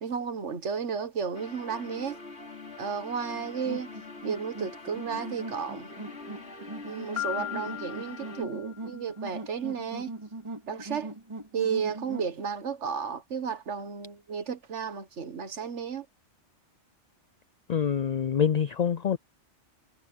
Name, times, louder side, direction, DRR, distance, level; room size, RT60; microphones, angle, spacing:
voice 1, 0.0-2.2 2.8-3.9 4.2-5.9 6.8-10.1 10.7-11.1 11.5-16.1, right 6 dB, 70° right, 1.7 m, -33 dB
sound 1, 1.3-8.5, left 3 dB, 65° left, 3.3 m, -44 dB
sound 2, 3.6-12.3, right 2 dB, 25° right, 2.4 m, -41 dB
Piano, 7.2-9.1, left 12 dB, 25° left, 3.0 m, -37 dB
voice 2, 17.7-19.2, left 8 dB, 80° left, 0.3 m, -26 dB
omnidirectional pair, 1.2 m